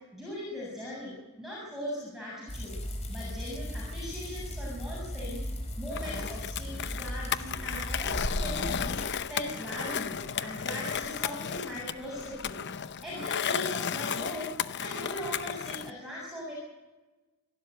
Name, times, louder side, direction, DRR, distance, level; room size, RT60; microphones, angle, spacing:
voice 1, 0.1-2.7 3.1-5.4 5.8-9.0 9.2-12.6 13.0-14.5 14.8-16.5, equal, ahead, -5 dB, 7.4 m, -39 dB
sound 1, 2.5-9.1, equal, 30° left, 4.4 m, -36 dB
Skateboard, 5.9-15.9, left 7 dB, 50° left, 0.8 m, -34 dB
28.0 x 12.5 x 9.3 m, 1.1 s
head